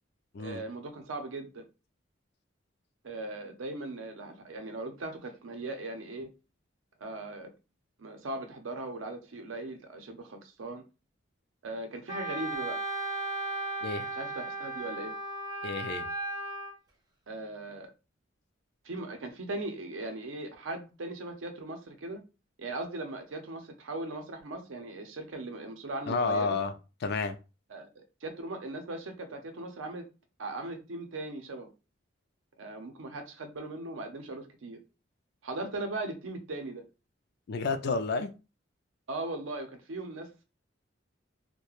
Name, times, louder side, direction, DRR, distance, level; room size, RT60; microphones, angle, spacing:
voice 1, 0.4-1.7 3.0-6.3 7.0-7.5 8.0-10.8 11.6-12.8 14.1-15.1 17.3-17.9 18.8-22.2 22.6-26.6 27.7-30.1 30.4-31.7 32.6-34.8 35.4-36.9 39.1-40.4, right 2 dB, 85° right, 0.6 m, -39 dB
Wind instrument woodwind instrument, 12.1-16.7, right 1 dB, 20° right, 0.5 m, -35 dB
voice 2, 15.6-16.1 26.1-26.7 27.0-27.4 37.5-38.3, left 4 dB, 55° left, 0.4 m, -30 dB
2.3 x 2.1 x 3.0 m
head